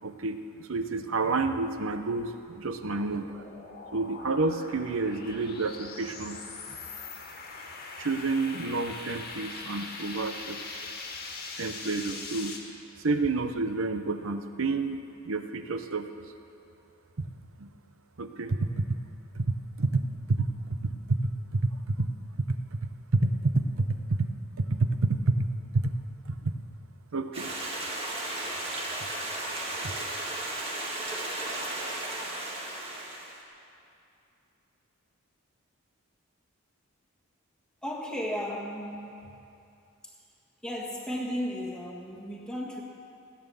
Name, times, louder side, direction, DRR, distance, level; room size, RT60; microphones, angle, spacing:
voice 1, 0.0-3.4 3.9-6.4 8.0-10.8 11.6-12.5 13.0-16.2 17.2-17.3 17.6-17.7 18.2-18.8 19.3-19.5 19.8-20.0 20.3-21.2 21.5-22.1 22.5-24.3 24.6-25.5 25.7-25.9 26.3-26.5 27.1-27.5 29.8-29.9, right 3 dB, 60° right, 9 dB, 0.8 m, -29 dB
sound 1, 2.5-12.6, left 3 dB, 45° left, 1.7 m, -42 dB
Stream, 27.3-33.4, right 1 dB, 25° right, 1.9 m, -34 dB
voice 2, 37.8-39.4 40.0-40.1 40.6-42.8, equal, 5° left, -2 dB, 1.6 m, -35 dB
16.0 x 9.3 x 6.9 m, 2.6 s
head